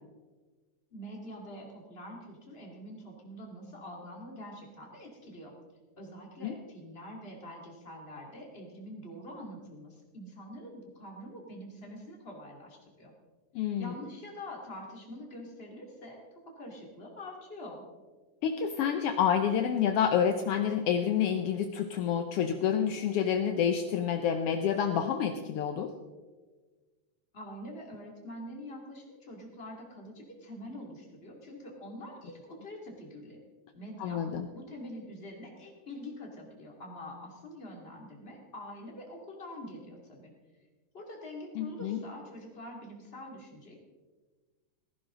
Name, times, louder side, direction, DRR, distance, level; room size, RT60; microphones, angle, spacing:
voice 1, 0.9-5.5 6.0-13.1 13.8-16.2 16.5-17.9 27.3-33.4 33.7-34.2 34.5-40.3 40.9-43.7, left 1 dB, 20° left, -1 dB, 2.5 m, -45 dB
voice 2, 13.5-13.9 18.4-25.9 34.0-34.5 41.6-42.0, left 8 dB, 75° left, 6 dB, 1.4 m, -28 dB
15.5 x 15.5 x 3.8 m, 1.3 s
omnidirectional pair, 3.4 m